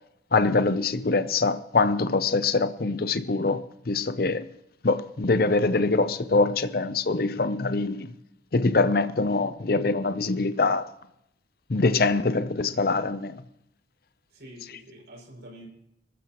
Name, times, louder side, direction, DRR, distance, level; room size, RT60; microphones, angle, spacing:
voice 1, 0.3-4.5 4.8-8.1 8.5-10.9 11.7-13.3, left 3 dB, 50° left, 0.6 m, -24 dB
voice 2, 14.3-15.7, right 1 dB, 65° right, 6.1 m, -46 dB
23.5 x 13.5 x 3.0 m
head